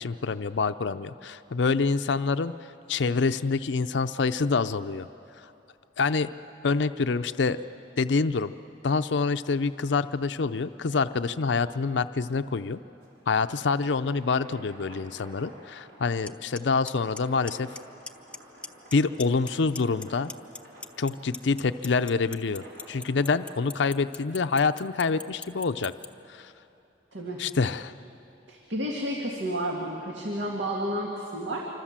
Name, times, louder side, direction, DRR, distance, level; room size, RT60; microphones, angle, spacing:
voice 1, 0.0-2.5 2.9-5.1 6.0-6.3 6.6-7.6 8.0-8.5 8.8-12.8 13.3-17.7 18.9-20.3 21.0-25.9 26.3-26.5 27.4-27.9, left 4 dB, 80° left, 11 dB, 0.5 m, -26 dB
sound 1, 12.7-24.0, right 1 dB, 65° right, 5.8 m, -52 dB
Clock, 16.3-16.4 16.6-16.9 17.2-17.8 18.1-18.4 18.6-19.5 19.8-26.1, left 4 dB, 5° left, 0.6 m, -37 dB
voice 2, 27.1-27.4 28.5-31.7, equal, 80° right, -1 dB, 2.2 m, -31 dB
26.5 x 25.0 x 7.4 m, 2.8 s
head